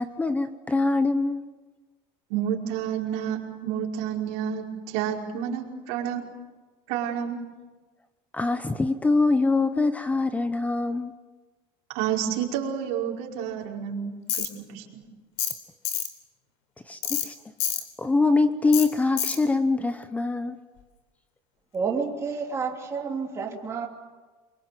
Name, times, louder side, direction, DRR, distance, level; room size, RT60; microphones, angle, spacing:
voice 1, 0.0-1.4 8.3-11.1 16.9-17.3 18.0-20.6, left 3 dB, 10° left, 0.9 m, -24 dB
voice 2, 2.3-6.2 6.9-7.4 11.9-15.0, right 9 dB, 75° right, 5.1 m, -30 dB
Tools, 14.3-14.5 15.4-15.6 15.8-16.1 17.0-17.3 17.6-17.8 18.7-18.9 19.2-19.4, left 11 dB, 70° left, 4.1 m, -27 dB
voice 3, 21.7-23.9, right 5 dB, 20° right, 3.1 m, -29 dB
28.5 x 24.0 x 7.8 m
cardioid pair, 150°, 13 cm